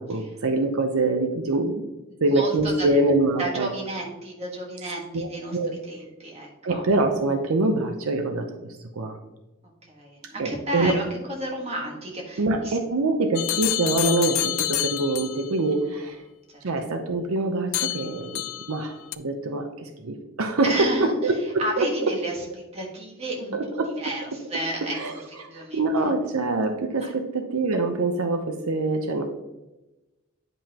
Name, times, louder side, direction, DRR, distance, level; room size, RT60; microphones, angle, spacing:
voice 1, 0.0-1.9 2.2-3.7 4.8-5.7 6.6-8.5 8.9-9.2 10.4-11.0 12.4-16.2 16.6-18.4 18.7-21.9 23.5-23.9 24.9-29.3, right 2 dB, 80° right, 6 dB, 0.7 m, -25 dB
voice 2, 2.1-2.9 3.4-5.6 5.9-6.8 9.9-12.8 16.5-16.6 20.6-21.1 21.6-22.4 22.7-23.5 24.0-25.0 25.5-25.8 27.0-27.1, right 1 dB, 30° right, -1 dB, 1.5 m, -32 dB
sound 1, 13.4-15.5 17.7-18.8 19.1-19.2, left 14 dB, 70° left, 0.4 m, -28 dB
9.5 x 5.4 x 2.9 m, 1.0 s
head